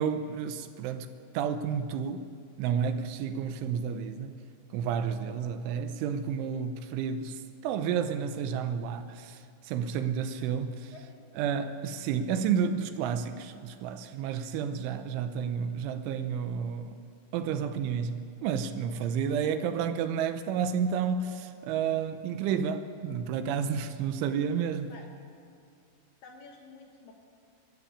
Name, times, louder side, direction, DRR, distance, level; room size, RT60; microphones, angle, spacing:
voice 1, 0.0-2.3 2.6-4.4 4.7-10.9 11.4-17.0 17.3-24.9, right 7 dB, 80° right, 3.2 m, -31 dB
voice 2, 10.9-11.3 19.4-19.5 24.9-25.1 26.2-27.1, left 4 dB, 65° left, 3.1 m, -50 dB
24.5 x 13.0 x 8.6 m
omnidirectional pair, 5.7 m